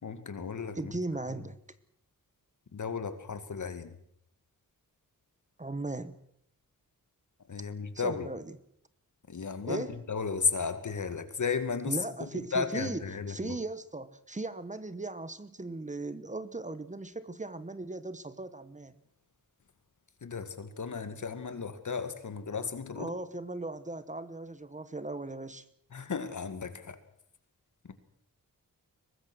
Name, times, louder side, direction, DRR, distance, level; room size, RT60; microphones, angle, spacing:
voice 1, 0.0-0.9 2.7-3.9 7.5-8.3 9.3-13.6 20.2-23.1 25.9-27.0 27.8-27.9, left 5 dB, 60° left, 10 dB, 2.2 m, -34 dB
voice 2, 0.7-1.6 5.6-6.2 7.9-8.6 9.6-10.0 11.9-13.0 13.3-18.9 23.0-25.7, right 2 dB, 20° right, 13 dB, 1.0 m, -37 dB
23.0 x 20.0 x 6.3 m, 0.72 s
wide cardioid pair, 125°, 34 cm